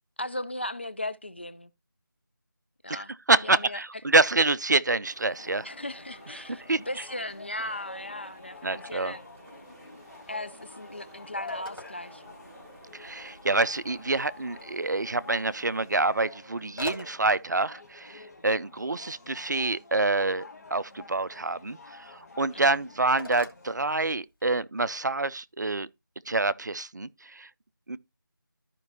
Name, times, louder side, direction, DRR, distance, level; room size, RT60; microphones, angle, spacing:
voice 1, 0.2-1.7 2.8-3.1 3.4-3.8 5.6-9.2 10.3-12.2 22.5-22.9, left 1 dB, 30° left, 0.4 m, -37 dB
voice 2, 2.9-5.7 6.7-6.8 8.6-9.1 12.9-25.9 26.3-27.5 27.9-28.0, right 3 dB, 55° right, 0.5 m, -27 dB
sound 1, 5.0-16.0, right 2 dB, 40° right, 2.0 m, -54 dB
sound 2, 5.4-24.0, left 3 dB, 45° left, 1.9 m, -48 dB
Telephone, 10.1-24.6, left 1 dB, 80° left, 2.8 m, -49 dB
13.0 x 5.2 x 2.8 m
figure-of-eight pair, 165°, 11 cm